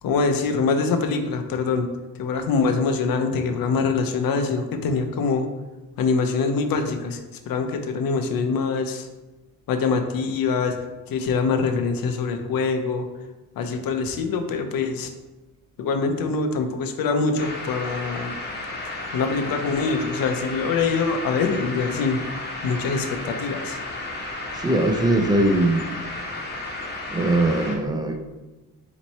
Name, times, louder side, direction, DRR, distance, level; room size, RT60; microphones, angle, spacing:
voice 1, 0.0-1.9 2.2-5.5 6.0-7.2 7.5-9.1 9.7-10.8 11.1-13.1 13.6-15.1 15.8-18.3 19.1-22.2 22.6-23.8, left 4 dB, 80° left, 7 dB, 0.6 m, -24 dB
sound 1, 17.4-27.7, left 2 dB, 30° left, 0.9 m, -33 dB
voice 2, 24.5-25.9 27.1-28.3, right 1 dB, 10° right, 5 dB, 0.4 m, -21 dB
4.4 x 3.0 x 4.1 m, 1.1 s
cardioid pair, 145°, 35 cm